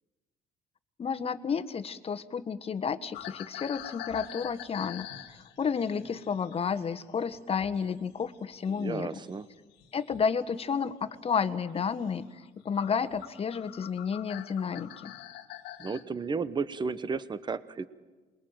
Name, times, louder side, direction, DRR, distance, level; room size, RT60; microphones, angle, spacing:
voice 1, 1.0-9.1 9.9-15.1, left 6 dB, 35° left, 12 dB, 1.4 m, -31 dB
sound 1, 3.1-7.9 8.2-10.3 10.9-11.2 11.7-11.8 12.4-12.5 12.7-16.0, left 12 dB, 90° left, 1.9 m, -45 dB
voice 2, 8.7-9.5 15.8-17.9, right 4 dB, 25° right, 14 dB, 1.1 m, -33 dB
27.5 x 22.0 x 9.1 m, 1.3 s
cardioid pair, 110°, 17 cm